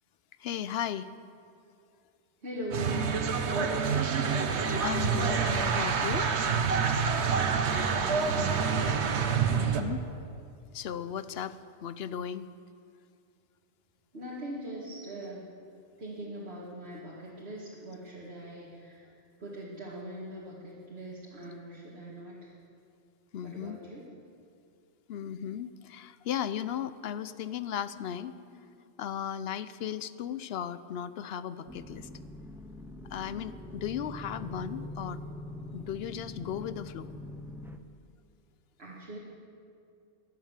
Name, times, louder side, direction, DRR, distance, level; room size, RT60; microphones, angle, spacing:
voice 1, 0.4-1.1 4.8-6.3 9.5-10.0 10.7-12.5 23.3-23.8 25.1-32.1 33.0-35.2 35.7-37.1, left 9 dB, 70° left, 15 dB, 0.8 m, -36 dB
voice 2, 2.4-3.0 3.4-4.1 7.6-8.9 14.1-15.4 16.0-19.1 19.4-22.5 23.4-24.1 38.8-39.2, right 1 dB, 65° right, -6 dB, 2.4 m, -41 dB
sound 1, 2.7-9.8, right 6 dB, 85° right, 1.3 m, -27 dB
sound 2, 31.7-37.8, left 1 dB, 5° right, 0.6 m, -43 dB
17.0 x 11.5 x 7.3 m, 2.4 s
omnidirectional pair, 1.1 m